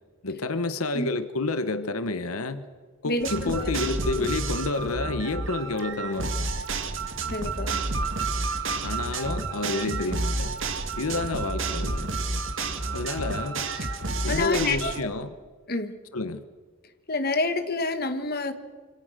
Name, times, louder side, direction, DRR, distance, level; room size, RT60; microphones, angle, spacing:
voice 1, 0.2-2.6 3.0-6.5 8.8-10.6 11.0-12.2 12.9-13.6 14.2-15.3 16.1-16.4, left 3 dB, 85° left, 11 dB, 1.2 m, -29 dB
voice 2, 3.0-3.7 7.3-7.8 11.1-11.2 13.8-13.9 14.3-14.9 15.7-16.0 17.1-18.5, left 3 dB, 45° left, 8 dB, 1.9 m, -28 dB
sound 1, 3.2-15.0, right 3 dB, 60° right, 2.2 m, -30 dB
27.0 x 25.5 x 6.7 m, 1.6 s
head